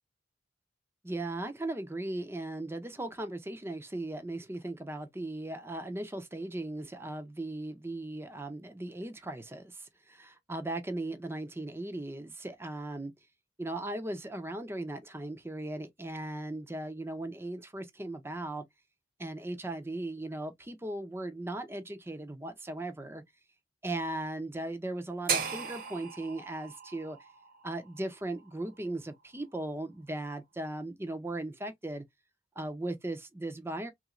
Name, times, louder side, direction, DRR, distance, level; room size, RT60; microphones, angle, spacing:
voice 1, 1.0-13.1 13.6-18.6 19.2-23.2 23.8-27.2 27.6-32.0 32.6-33.9, right 2 dB, 15° right, 0.5 m, -38 dB
sound 1, 25.3-29.4, right 6 dB, 50° right, 1.1 m, -37 dB
3.2 x 2.5 x 3.0 m
head